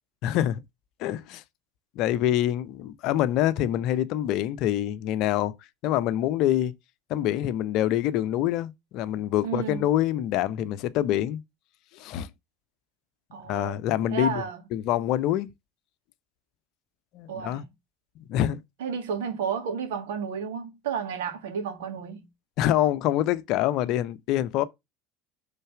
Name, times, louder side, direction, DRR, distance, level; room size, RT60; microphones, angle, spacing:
voice 1, 0.2-0.6 1.0-1.4 2.0-5.5 5.8-6.7 7.1-11.4 11.9-12.3 13.5-14.4 14.7-15.5 17.1-17.6 18.3-18.6 22.6-24.6, left 12 dB, 60° left, 0.6 m, -25 dB
voice 2, 9.4-9.8 13.3-13.8 14.1-14.6 17.3-17.7 18.8-22.3, right 6 dB, 75° right, 1.8 m, -32 dB
5.5 x 4.0 x 5.8 m
hypercardioid pair, 65°, 0 cm